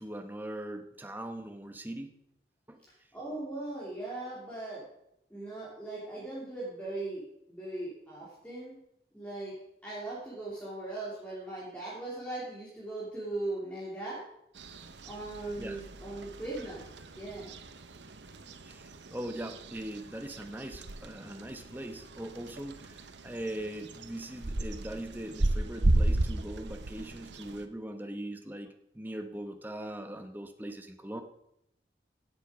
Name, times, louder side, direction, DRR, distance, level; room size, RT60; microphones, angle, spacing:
voice 1, 0.0-2.1 2.7-2.8 15.6-15.8 18.6-31.2, right 1 dB, 10° right, 6 dB, 1.0 m, -41 dB
voice 2, 2.9-4.8 5.3-7.2 7.5-8.8 9.1-9.5 9.8-14.2 15.0-16.9 17.2-17.5, right 2 dB, 5° left, -7 dB, 3.1 m, -39 dB
sound 1, 14.6-27.7, right 1 dB, 90° right, 1.0 m, -35 dB
16.0 x 7.7 x 5.1 m, 0.79 s
head